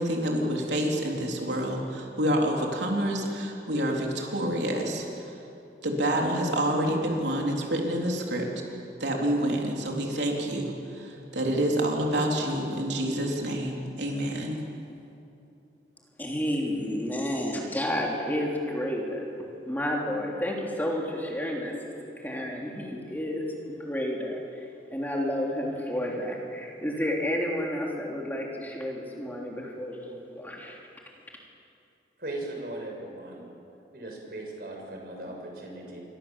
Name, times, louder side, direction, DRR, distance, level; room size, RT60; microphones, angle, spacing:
voice 1, 0.0-5.3 5.8-8.5 9.0-14.6, right 1 dB, 85° right, 0 dB, 3.8 m, -28 dB
voice 2, 16.2-19.2 19.6-21.7 22.2-30.8, left 1 dB, 10° left, -1 dB, 3.3 m, -31 dB
voice 3, 32.2-33.5 33.9-36.0, right 1 dB, 55° right, 1 dB, 6.3 m, -38 dB
28.5 x 24.0 x 7.4 m, 2.7 s
head